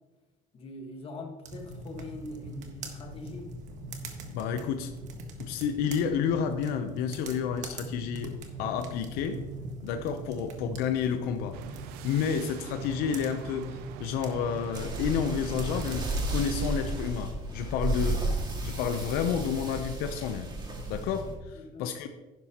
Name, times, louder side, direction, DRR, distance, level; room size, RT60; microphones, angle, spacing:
voice 1, 0.5-3.5 21.5-21.9, left 2 dB, 40° left, 2 dB, 1.6 m, -42 dB
sound 1, 1.4-16.9, right 2 dB, 55° right, 1.5 m, -42 dB
voice 2, 4.3-4.9 5.4-8.3 8.6-9.4 9.8-11.6 12.0-18.3 18.6-20.5 20.9-22.1, left 7 dB, 85° left, 7 dB, 0.8 m, -30 dB
sound 2, 11.5-17.1, right 11 dB, 85° right, 0.5 m, -44 dB
sound 3, 14.7-21.4, right 2 dB, 30° right, 2.2 m, -33 dB
11.0 x 10.5 x 3.0 m, 1.2 s
cardioid pair, 130°, 15 cm